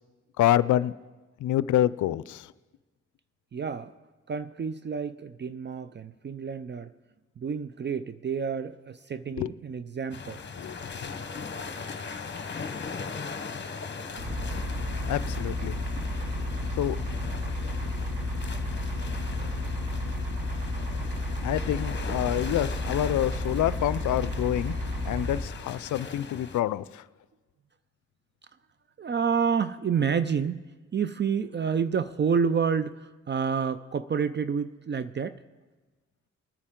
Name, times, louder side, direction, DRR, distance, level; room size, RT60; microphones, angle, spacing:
voice 1, 0.4-0.9 1.4-2.5 9.4-9.5 10.6-10.8 11.0-11.1 15.1-15.8 16.8-17.0 21.4-24.7 25.0-27.0, left 12 dB, 70° left, 18 dB, 0.4 m, -27 dB
voice 2, 3.5-3.9 4.3-6.9 7.4-10.4 29.0-30.6 30.9-35.4, right 6 dB, 35° right, 13 dB, 0.5 m, -29 dB
sound 1, 10.1-26.6, left 5 dB, 35° left, 1.0 m, -39 dB
sound 2, 14.2-25.4, left 1 dB, 90° right, 2.4 m, -32 dB
21.0 x 9.8 x 3.7 m, 1.2 s
supercardioid pair, 50°, 31 cm